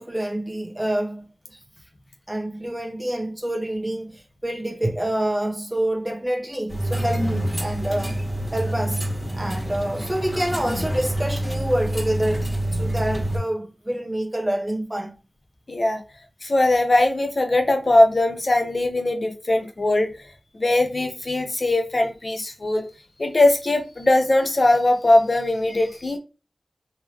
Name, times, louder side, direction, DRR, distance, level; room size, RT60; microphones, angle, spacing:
voice 1, 0.0-1.6 2.3-8.2 8.5-9.1 9.3-15.1, right 1 dB, 10° right, 0.9 m, -27 dB
sound 1, 6.7-13.4, right 1 dB, 15° left, 2.0 m, -27 dB
voice 2, 15.7-16.0 16.4-20.2 20.5-22.9 23.2-26.2, left 2 dB, 50° left, 0.9 m, -20 dB
3.7 x 3.1 x 2.9 m
wide cardioid pair, 60°, 0 cm